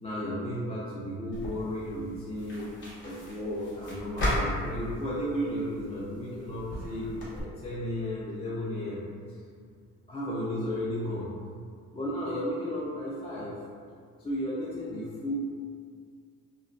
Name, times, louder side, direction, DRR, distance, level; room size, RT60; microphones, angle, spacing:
voice 1, 0.0-9.0 10.1-11.3 11.9-13.6 14.2-15.3, equal, 20° left, -8 dB, 0.4 m, -34 dB
sound 1, 1.3-7.4, equal, 40° left, 0.9 m, -36 dB
2.5 x 2.1 x 2.4 m, 2.1 s
cardioid pair, 90°, 30 cm